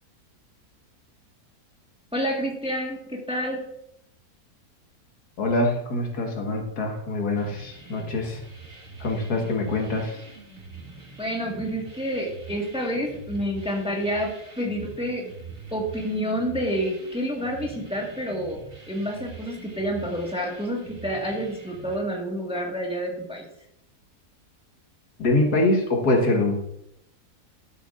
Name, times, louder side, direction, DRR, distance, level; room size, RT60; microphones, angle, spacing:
voice 1, 2.1-3.6 11.2-14.3 14.6-15.2 15.7-18.6 18.9-23.4, equal, 5° right, -1 dB, 1.5 m, -28 dB
voice 2, 5.4-8.4 9.0-10.2 25.2-26.6, left 2 dB, 75° left, 1 dB, 2.1 m, -24 dB
sound 1, 7.4-22.0, right 4 dB, 45° right, 2.2 m, -44 dB
12.0 x 8.2 x 2.5 m, 0.75 s
omnidirectional pair, 1.7 m